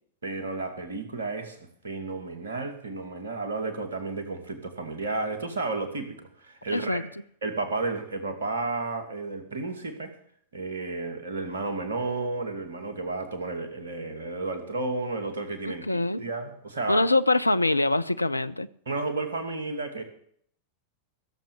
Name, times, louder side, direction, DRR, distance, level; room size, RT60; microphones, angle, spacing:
voice 1, 0.2-7.0 7.4-10.1 10.5-17.1 18.9-20.0, right 3 dB, 70° right, 2.4 m, -32 dB
voice 2, 6.7-7.0 15.6-16.3 16.9-18.7, left 2 dB, 85° left, 0.5 m, -24 dB
16.5 x 7.6 x 7.0 m
figure-of-eight pair, 90°, 0 cm